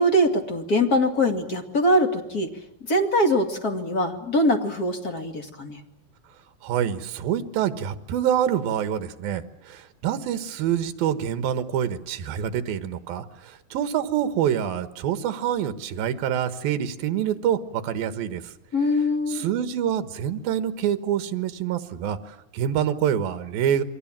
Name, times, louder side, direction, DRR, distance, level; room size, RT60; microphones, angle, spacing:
voice 1, 0.0-2.5 2.9-5.8 18.7-19.5, equal, 30° left, 5 dB, 2.3 m, -22 dB
voice 2, 6.6-18.5 19.3-23.8, right 9 dB, 75° right, 11 dB, 3.1 m, -26 dB
29.0 x 23.0 x 7.5 m, 0.83 s
omnidirectional pair, 4.4 m